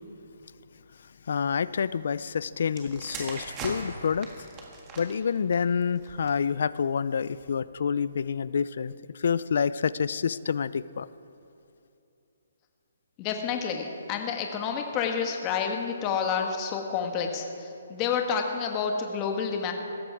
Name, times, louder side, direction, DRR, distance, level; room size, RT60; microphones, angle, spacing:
voice 1, 1.3-4.3 5.0-11.1, left 6 dB, 60° left, 18 dB, 0.4 m, -28 dB
sound 1, 2.7-6.5 7.3-7.6, right 3 dB, 20° right, 1.8 m, -40 dB
voice 2, 13.2-19.7, left 6 dB, 20° left, 3 dB, 1.3 m, -29 dB
16.5 x 14.0 x 4.8 m, 2.8 s
hypercardioid pair, 160°, 0 cm